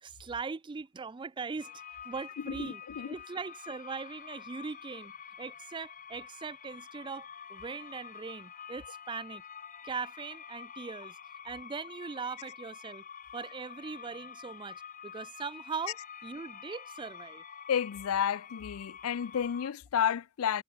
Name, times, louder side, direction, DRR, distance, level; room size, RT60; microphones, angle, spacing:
voice 1, 0.0-1.7 2.0-2.8 3.1-5.1 5.4-9.4 9.8-11.2 11.4-13.0 13.3-17.4, right 5 dB, 20° right, 0.3 m, -40 dB
sound 1, 1.6-19.7, left 7 dB, 40° left, 1.5 m, -48 dB
voice 2, 2.4-3.2 17.7-20.6, left 8 dB, 75° left, 0.4 m, -31 dB
head